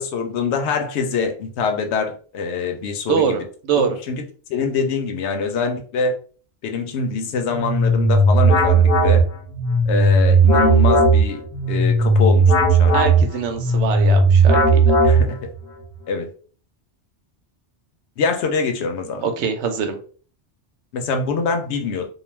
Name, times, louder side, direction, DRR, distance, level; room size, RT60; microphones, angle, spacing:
voice 1, 0.0-3.4 3.8-4.2 4.5-6.2 6.6-9.2 9.9-11.4 11.7-12.9 15.0-15.4 16.1-16.3 18.2-19.2 20.9-22.1, left 4 dB, 80° left, 5 dB, 0.8 m, -24 dB
voice 2, 3.1-4.0 12.9-15.0 19.2-20.0, right 6 dB, 85° right, 6 dB, 0.9 m, -23 dB
sound 1, 7.5-15.6, right 2 dB, 40° left, 0.8 m, -15 dB
2.3 x 2.3 x 3.2 m, 0.43 s
omnidirectional pair, 1.1 m